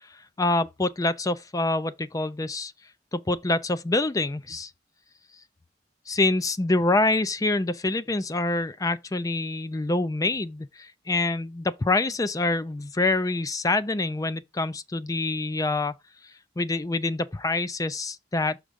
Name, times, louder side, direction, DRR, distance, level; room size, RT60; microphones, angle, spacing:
voice 1, 0.4-2.7 3.1-4.7 6.1-16.0 16.6-18.6, left 2 dB, 20° left, 0.4 m, -26 dB
6.4 x 3.6 x 5.1 m
head